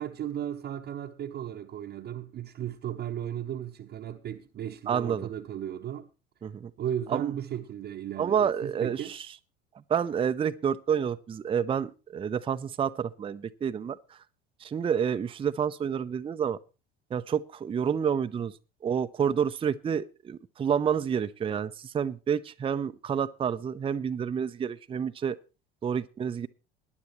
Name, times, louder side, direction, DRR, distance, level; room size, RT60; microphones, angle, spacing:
voice 1, 0.0-6.1 6.8-9.1, right 10 dB, 35° right, 0.9 m, -35 dB
voice 2, 4.9-5.3 6.4-6.7 7.1-7.3 8.2-9.3 9.9-14.0 14.6-16.6 17.1-18.5 18.8-25.4 25.8-26.5, right 7 dB, 20° right, 0.6 m, -29 dB
19.5 x 10.5 x 3.1 m
figure-of-eight pair, 65°, 31 cm